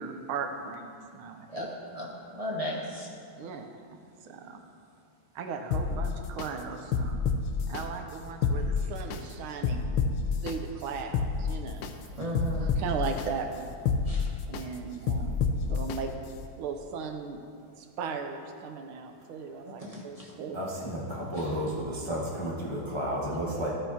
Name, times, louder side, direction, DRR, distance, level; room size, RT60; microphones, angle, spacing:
voice 1, 0.0-1.7 3.4-4.6 5.3-7.2 7.7-9.9 10.4-11.9 12.6-13.7 14.5-15.4 15.7-16.1 16.6-17.4 17.8-20.6, right 5 dB, 80° right, 5 dB, 1.6 m, -37 dB
voice 2, 1.9-3.1 12.2-12.7 14.1-14.3 19.8-20.3 21.3-21.5, equal, 35° right, -3 dB, 0.5 m, -35 dB
sound 1, 5.7-6.5 6.9-7.8 8.3-9.2 9.6-10.5 11.0-11.9 12.3-13.3 13.7-14.6 15.1-16.0 16.4-16.5, left 5 dB, 75° left, 1.2 m, -28 dB
voice 3, 20.5-23.7, equal, 20° left, -6 dB, 0.9 m, -32 dB
13.5 x 8.9 x 2.8 m, 2.3 s
omnidirectional pair, 2.3 m